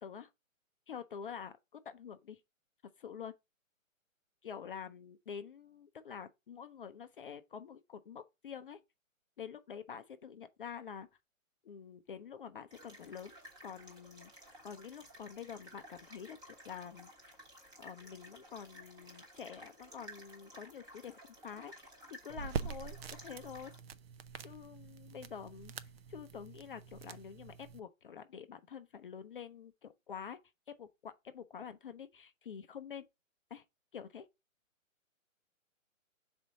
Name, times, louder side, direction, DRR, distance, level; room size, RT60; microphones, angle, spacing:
voice 1, 0.9-1.6 1.9-2.4 3.0-3.3 4.4-8.8 9.4-11.1 11.6-13.4 13.6-14.3 14.6-17.1 17.8-21.2 21.4-21.7 22.1-23.7 24.4-25.7 26.1-30.4 30.8-33.1 33.5-33.6 33.9-34.3, left 7 dB, 40° left, 0.5 m, -47 dB
sound 1, 12.7-23.8, equal, 10° right, 1.1 m, -55 dB
sound 2, 22.3-27.8, right 6 dB, 45° right, 0.6 m, -44 dB
6.0 x 4.3 x 3.8 m
hypercardioid pair, 145°, 41 cm